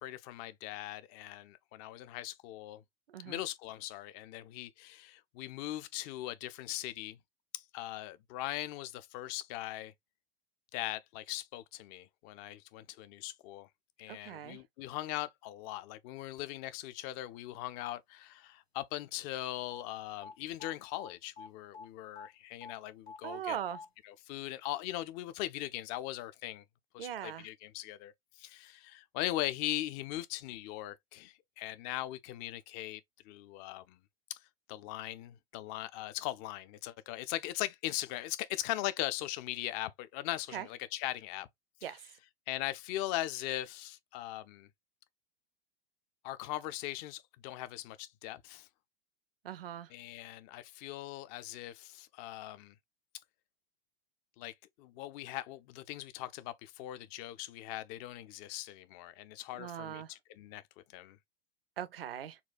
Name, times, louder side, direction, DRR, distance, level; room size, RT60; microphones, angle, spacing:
voice 1, 0.0-2.8 3.2-7.2 7.5-9.9 10.7-13.7 14.0-23.6 24.0-26.6 26.9-28.1 28.4-33.0 33.3-34.0 34.3-34.4 34.7-41.5 41.8-42.0 42.5-44.7 46.2-48.7 49.9-52.7 54.4-60.6 60.9-61.2, left 15 dB, 30° left, 0.4 m, -40 dB
voice 2, 3.1-3.4 14.1-14.6 23.2-23.8 27.0-27.5 40.5-40.7 41.8-42.0 49.4-49.9 59.6-60.1 61.8-62.4, right 10 dB, 65° right, 0.6 m, -40 dB
sound 1, 19.7-19.8 20.2-20.3 20.6-21.1 21.4-21.5 21.7-21.9 22.2-22.3 22.6-22.7 23.1-23.4 23.7-23.9, left 5 dB, 90° left, 1.3 m, -47 dB
4.2 x 2.2 x 2.4 m
figure-of-eight pair, 90°, 31 cm